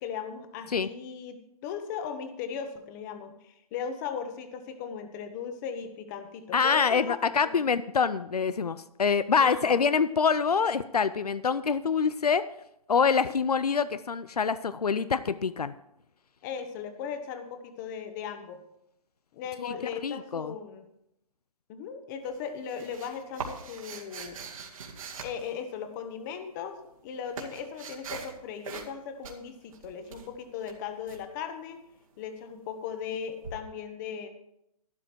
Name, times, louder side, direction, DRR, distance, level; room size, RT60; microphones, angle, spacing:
voice 1, 0.0-7.6 9.4-9.8 16.4-18.6 19.3-20.9 21.7-24.4 25.2-26.8 27.0-31.9 32.2-34.3, left 7 dB, 30° left, 8 dB, 1.3 m, -38 dB
voice 2, 6.5-12.4 12.9-15.7 19.6-19.7 20.0-20.5, left 6 dB, 90° left, 15 dB, 0.5 m, -25 dB
sound 1, 22.2-26.1 26.8-28.4 28.6-29.0 29.2-31.2 33.4-33.5, right 5 dB, 60° right, 2.2 m, -42 dB
12.0 x 11.0 x 4.6 m, 0.80 s
hypercardioid pair, 140°, 19 cm